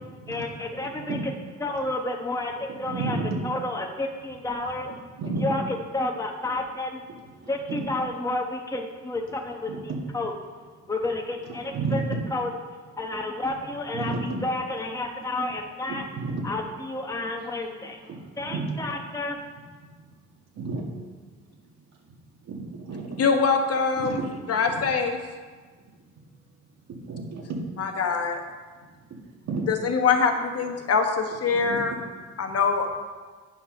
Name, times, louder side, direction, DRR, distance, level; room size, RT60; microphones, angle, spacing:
voice 1, 0.3-1.3 1.6-3.2 3.4-4.9 5.4-7.0 7.5-10.3 10.9-12.0 12.3-12.5 13.0-16.0 16.4-18.0 18.4-19.4, left 2 dB, 10° left, 1 dB, 1.0 m, -30 dB
voice 2, 0.8-1.2 2.8-3.4 5.2-5.5 7.4-7.8 9.7-10.0 11.5-12.0 13.9-14.2 16.1-16.4 18.0-18.6 20.0-20.1 20.5-20.8 22.4-23.2 24.0-24.3 25.8-25.9 26.9-27.6 29.1-29.7 31.5-31.8 32.4-32.5, right 4 dB, 60° right, -1 dB, 2.2 m, -32 dB
voice 3, 23.2-24.2 24.5-25.2 27.8-28.4 29.7-31.9 32.4-32.9, left 5 dB, 55° left, 5 dB, 1.2 m, -23 dB
9.4 x 5.7 x 5.3 m, 1.4 s
cardioid pair, 90°, 30 cm